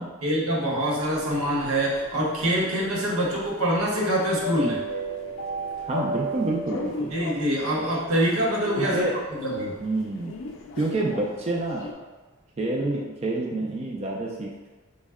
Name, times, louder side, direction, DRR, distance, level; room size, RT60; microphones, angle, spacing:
voice 1, 0.2-4.8 7.1-9.8, right 1 dB, 90° right, -3 dB, 0.9 m, -25 dB
sound 1, 1.0-11.9, equal, 60° left, 0.4 m, -35 dB
voice 2, 5.8-7.1 8.8-9.1 9.8-10.3 10.8-11.9 12.6-14.7, right 2 dB, 30° right, -2 dB, 0.3 m, -28 dB
4.2 x 2.1 x 3.5 m, 1.2 s
head